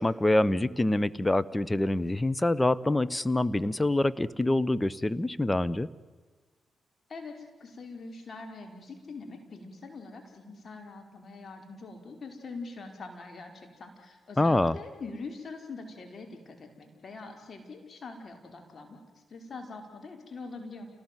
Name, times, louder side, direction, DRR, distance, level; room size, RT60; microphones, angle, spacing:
voice 1, 0.0-5.9 14.4-14.8, left 1 dB, 20° left, 17 dB, 1.1 m, -26 dB
voice 2, 7.1-19.0 19.3-20.9, left 3 dB, 50° left, 4 dB, 5.1 m, -43 dB
28.5 x 19.0 x 9.4 m, 1.4 s
hypercardioid pair, 40°, 0 cm